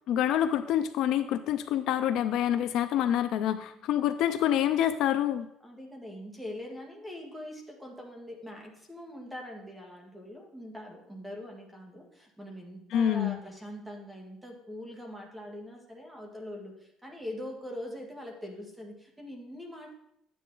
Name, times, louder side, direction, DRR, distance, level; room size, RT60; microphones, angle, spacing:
voice 1, 0.1-5.5 12.9-13.4, left 10 dB, 55° left, 10 dB, 0.5 m, -27 dB
voice 2, 5.6-19.9, left 1 dB, 5° right, 0 dB, 1.8 m, -43 dB
11.5 x 9.4 x 3.9 m, 0.78 s
cardioid pair, 165°, 0 cm